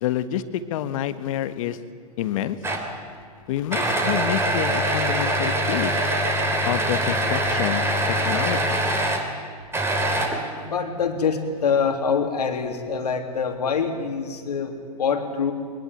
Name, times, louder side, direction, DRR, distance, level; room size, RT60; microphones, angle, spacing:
voice 1, 0.0-1.8 2.2-2.6 3.5-5.9 6.7-7.9 8.2-8.8, left 11 dB, 55° left, 12 dB, 1.5 m, -27 dB
sound 1, 2.6-3.0 3.7-9.3 9.7-10.6, right 1 dB, 10° right, 3.3 m, -23 dB
voice 2, 10.6-14.7 15.0-15.5, left 6 dB, 85° left, 4 dB, 3.3 m, -25 dB
22.0 x 20.0 x 9.2 m, 2.2 s
hypercardioid pair, 120°, 20 cm